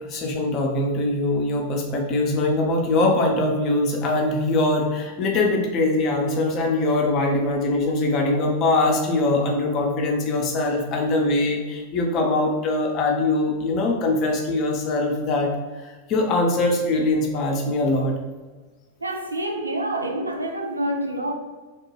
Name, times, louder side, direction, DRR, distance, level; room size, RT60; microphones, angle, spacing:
voice 1, 0.0-15.5 15.8-18.1, left 2 dB, 35° left, 1 dB, 0.6 m, -22 dB
voice 2, 19.0-21.3, right 1 dB, 80° right, 3 dB, 0.3 m, -27 dB
2.9 x 2.2 x 3.2 m, 1.3 s
figure-of-eight pair, 90°, 0 cm